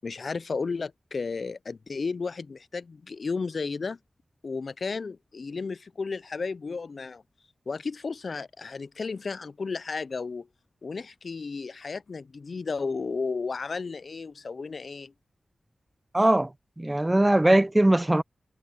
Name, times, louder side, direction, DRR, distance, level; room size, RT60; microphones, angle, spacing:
voice 1, 0.0-4.0 4.4-7.2 7.7-10.5 10.8-15.1 16.2-16.3, left 4 dB, 70° left, 0.3 m, -33 dB
voice 2, 16.1-16.5 16.8-18.2, right 1 dB, 20° right, 0.5 m, -20 dB
cardioid pair, 50°, 0 cm